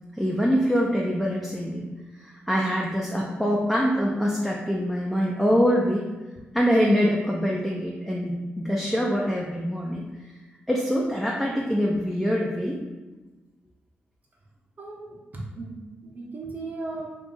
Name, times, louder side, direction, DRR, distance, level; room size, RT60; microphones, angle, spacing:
voice 1, 0.1-1.9 2.2-6.1 6.5-10.0 10.7-12.8, equal, 5° left, -3 dB, 0.5 m, -24 dB
voice 2, 14.8-17.2, right 3 dB, 40° right, -4 dB, 0.7 m, -37 dB
2.6 x 2.4 x 3.8 m, 1.2 s
cardioid pair, 55°, 4 cm